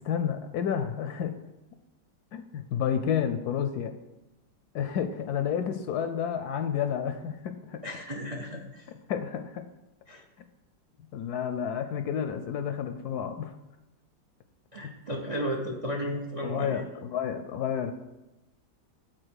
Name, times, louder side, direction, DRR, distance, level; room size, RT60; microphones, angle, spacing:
voice 1, 0.0-1.4 2.3-3.9 4.7-7.8 9.1-9.6 11.1-13.5 16.4-17.9, left 8 dB, 70° left, 8 dB, 1.0 m, -30 dB
voice 2, 7.8-8.9 10.1-10.2 14.7-16.8, equal, 65° right, 2 dB, 0.3 m, -34 dB
8.7 x 4.4 x 6.3 m, 0.97 s
omnidirectional pair, 2.0 m